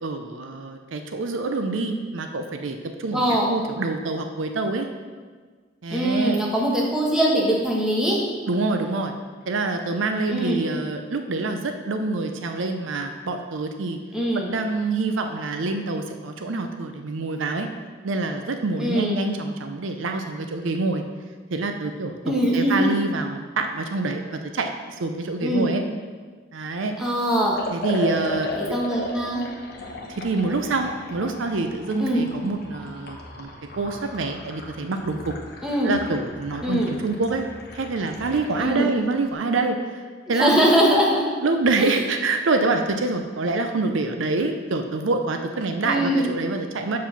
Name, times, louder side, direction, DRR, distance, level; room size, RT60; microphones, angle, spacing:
voice 1, 0.0-4.9 5.8-6.4 8.5-9.1 9.5-14.0 14.3-17.7 18.0-21.0 21.5-25.8 26.5-26.9 27.7-28.8 30.1-33.5 33.8-35.4 35.8-37.5 37.7-40.6 41.4-47.0, right 3 dB, 70° right, 6 dB, 0.6 m, -26 dB
voice 2, 3.1-3.5 5.9-8.2 10.3-10.6 14.1-14.5 18.8-19.2 22.2-22.9 25.4-25.7 27.0-27.6 28.6-29.4 32.0-32.2 35.6-35.9 36.6-36.9 38.6-38.9 40.3-41.2 41.8-41.9 45.8-46.3, right 1 dB, 5° right, -4 dB, 1.2 m, -22 dB
Liquid, 27.5-38.7, left 1 dB, 50° left, 1.0 m, -35 dB
7.1 x 4.7 x 5.8 m, 1.5 s
head